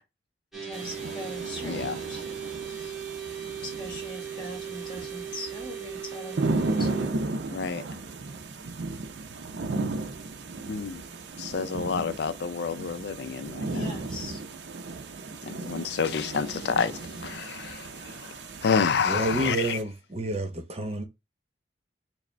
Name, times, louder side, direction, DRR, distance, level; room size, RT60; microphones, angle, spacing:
sound 1, 0.5-7.1, right 7 dB, ahead, 0.9 m, -38 dB
voice 1, 0.6-2.2 3.6-7.2 13.7-14.4, left 1 dB, 25° left, 1.5 m, -41 dB
sound 2, 0.7-19.8, right 3 dB, 80° right, 0.5 m, -35 dB
voice 2, 1.6-2.0 7.5-7.8 10.7-11.0 11.4-14.0 15.4-18.3 18.6-19.6, left 6 dB, 70° left, 0.4 m, -29 dB
voice 3, 19.0-21.0, right 1 dB, 35° right, 0.9 m, -29 dB
4.9 x 2.1 x 3.2 m
head